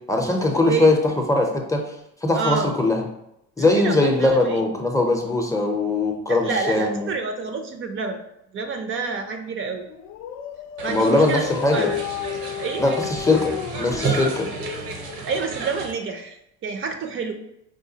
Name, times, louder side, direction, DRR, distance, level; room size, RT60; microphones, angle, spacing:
voice 1, 0.1-1.0 1.3-1.8 2.2-3.0 3.6-7.1 10.9-11.9 12.8-13.5 13.8-14.5, left 2 dB, 10° left, 1 dB, 0.5 m, -20 dB
voice 2, 2.3-2.7 3.6-4.6 6.3-8.2 8.5-9.8 10.8-12.0 12.6-12.8 15.3-16.4 16.6-17.3, right 4 dB, 45° right, 6 dB, 0.5 m, -28 dB
Dog, 9.9-15.5, left 10 dB, 70° left, 0.4 m, -33 dB
sound 1, 10.8-15.9, right 4 dB, 75° right, 0.8 m, -32 dB
4.9 x 2.3 x 2.7 m, 0.81 s
cardioid pair, 100°, 29 cm